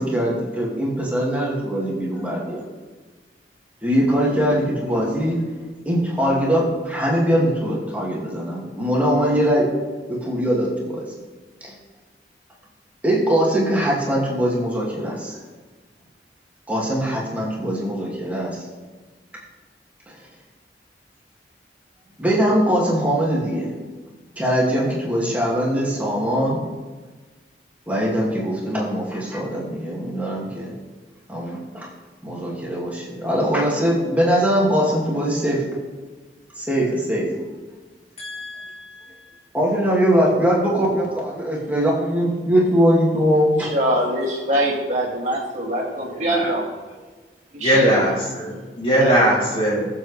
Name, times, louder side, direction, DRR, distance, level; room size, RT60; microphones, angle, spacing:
voice 1, 0.0-2.6 3.8-5.5 5.9-9.7 10.1-11.0 11.6-11.8 13.0-15.4 16.7-18.7 20.1-20.2 22.2-23.7 24.4-26.6 27.9-30.7 31.3-31.9 32.2-35.7 36.6-37.4 39.5-43.7, equal, 10° right, -5 dB, 2.3 m, -21 dB
voice 2, 38.2-39.2 46.1-46.5 47.6-49.9, equal, 30° left, -4 dB, 3.2 m, -21 dB
voice 3, 43.6-46.6 47.5-48.0 49.0-49.2, right 1 dB, 40° right, -3 dB, 2.6 m, -23 dB
20.5 x 7.6 x 3.4 m, 1.3 s
head